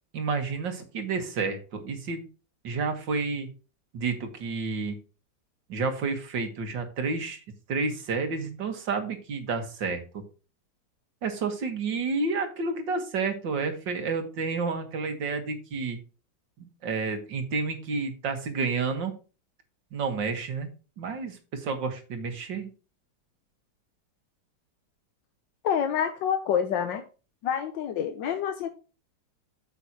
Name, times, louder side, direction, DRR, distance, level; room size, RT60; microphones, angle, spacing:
voice 1, 0.1-2.2 2.6-3.5 3.9-4.9 5.7-7.4 7.7-10.2 11.2-16.0 16.6-19.1 19.9-20.7 21.0-22.7, right 4 dB, 80° right, 5 dB, 2.3 m, -30 dB
voice 2, 25.6-27.0 27.4-28.7, left 8 dB, 85° left, 7 dB, 1.5 m, -27 dB
8.4 x 8.1 x 2.9 m, 0.33 s
omnidirectional pair, 2.0 m